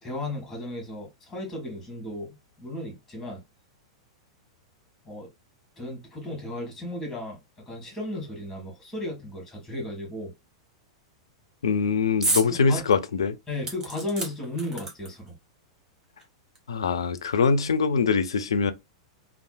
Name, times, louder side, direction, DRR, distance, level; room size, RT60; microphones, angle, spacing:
voice 1, 0.0-3.4 5.0-5.3 5.8-10.3 12.5-12.8 13.5-15.3, left 1 dB, 5° left, 1.5 m, -35 dB
voice 2, 11.6-13.4 16.7-18.7, left 5 dB, 70° left, 0.4 m, -23 dB
sound 1, 12.2-12.5 12.9-13.0 13.6-15.3 16.2-16.3 16.6-16.7, right 2 dB, 20° right, 1.1 m, -30 dB
3.3 x 2.4 x 2.4 m
figure-of-eight pair, 95°, 3 cm